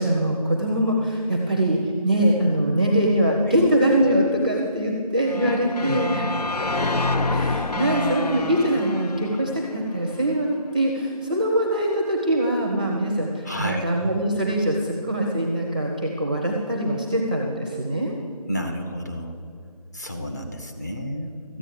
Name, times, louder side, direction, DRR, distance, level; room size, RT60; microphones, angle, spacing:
voice 1, 0.0-6.2 7.3-18.1, right 1 dB, 15° right, 1 dB, 0.6 m, -23 dB
sound 1, 5.3-10.3, left 2 dB, 90° left, 0.8 m, -27 dB
voice 2, 13.4-13.8 18.5-19.4 19.9-21.6, left 1 dB, 25° left, 2 dB, 0.9 m, -31 dB
13.5 x 8.8 x 6.7 m, 2.3 s
figure-of-eight pair, 170°, 20 cm